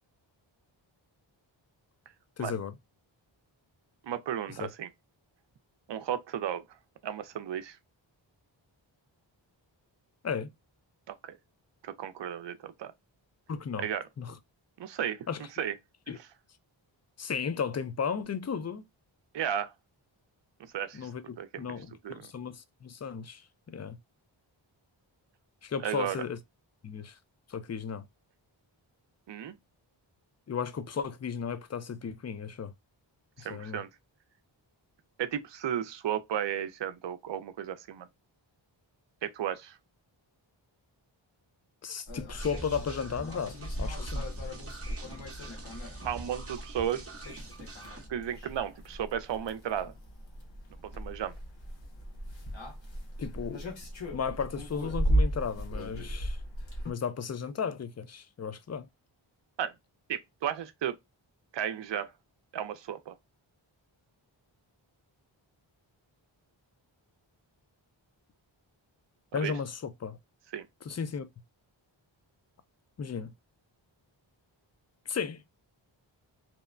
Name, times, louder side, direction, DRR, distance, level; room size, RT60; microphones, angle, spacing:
voice 1, 2.4-2.7 4.6-4.7 10.2-10.5 13.5-13.9 14.2-14.4 15.3-15.4 16.1-16.2 17.2-18.8 20.9-24.0 25.6-26.4 26.8-27.2 27.5-28.0 30.5-32.7 33.4-33.8 41.8-44.3 53.2-53.6 54.1-56.4 56.8-58.9 69.3-70.2 70.9-71.3 73.0-73.3 75.1-75.4, left 6 dB, 35° left, 0.4 m, -35 dB
voice 2, 4.0-4.9 5.9-6.6 7.0-7.8 11.1-11.4 11.8-12.9 13.8-14.0 14.8-15.2 15.6-15.7 16.1-16.3 19.3-19.7 20.7-21.1 21.4-21.7 22.0-22.3 25.8-26.2 29.3-29.6 33.4-33.9 35.2-38.1 39.2-39.8 46.0-47.0 48.1-49.9 50.8-51.3 59.6-59.7 60.1-61.0 61.5-62.1 62.5-63.1 69.3-69.5 70.5-70.7, right 9 dB, 65° right, 0.5 m, -34 dB
sound 1, 42.1-56.9, right 1 dB, 65° left, 1.1 m, -36 dB
sound 2, 42.4-48.1, right 3 dB, 30° right, 0.7 m, -46 dB
2.8 x 2.1 x 2.4 m
wide cardioid pair, 60°, 48 cm